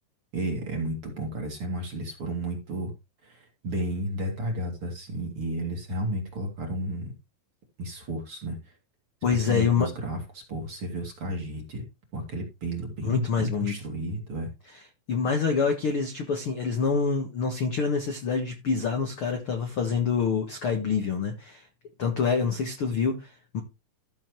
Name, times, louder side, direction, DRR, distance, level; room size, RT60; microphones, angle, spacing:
voice 1, 0.3-2.9 3.2-7.1 7.8-8.6 9.3-10.2 10.5-11.8 12.1-14.5, right 1 dB, 35° right, 2.9 m, -32 dB
voice 2, 9.2-9.9 13.0-13.7 15.1-21.7 22.0-23.6, left 5 dB, 70° left, 1.3 m, -26 dB
14.0 x 7.0 x 3.2 m
omnidirectional pair, 4.9 m